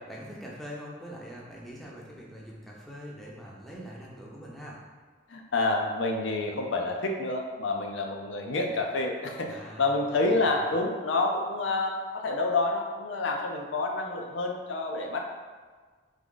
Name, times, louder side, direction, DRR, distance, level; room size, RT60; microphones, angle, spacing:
voice 1, 0.1-4.8 9.5-10.4, equal, ahead, -5 dB, 0.6 m, -43 dB
voice 2, 5.3-15.2, left 2 dB, 80° left, 2 dB, 0.6 m, -28 dB
3.7 x 3.5 x 3.7 m, 1.5 s
head